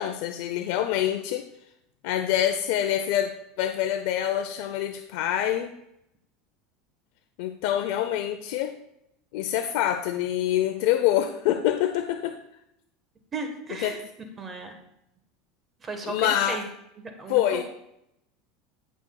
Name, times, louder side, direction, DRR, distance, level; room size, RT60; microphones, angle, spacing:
voice 1, 0.0-1.4 2.0-5.7 7.4-8.7 9.3-12.4 13.8-14.0 16.0-16.6 17.3-17.6, left 11 dB, 70° left, 7 dB, 0.6 m, -26 dB
voice 2, 13.3-14.0 14.4-14.7 15.8-16.6 17.2-17.6, right 3 dB, 20° right, 5 dB, 1.3 m, -35 dB
15.0 x 6.1 x 2.3 m, 0.81 s
supercardioid pair, 135°, 0 cm